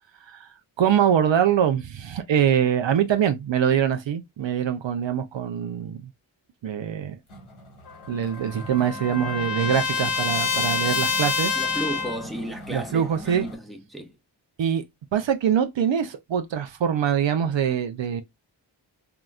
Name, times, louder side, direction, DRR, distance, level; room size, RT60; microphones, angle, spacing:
voice 1, 0.8-6.1 6.6-7.2 8.1-11.5 12.7-13.5 14.6-14.8 15.1-18.2, right 9 dB, 65° right, 0.6 m, -23 dB
sound 1, 7.3-13.5, equal, 85° left, 1.6 m, -42 dB
Trumpet, 7.9-12.3, left 5 dB, 50° left, 0.6 m, -27 dB
voice 2, 11.6-14.2, equal, ahead, 0.7 m, -34 dB
3.8 x 2.1 x 2.3 m
cardioid pair, 45°, 48 cm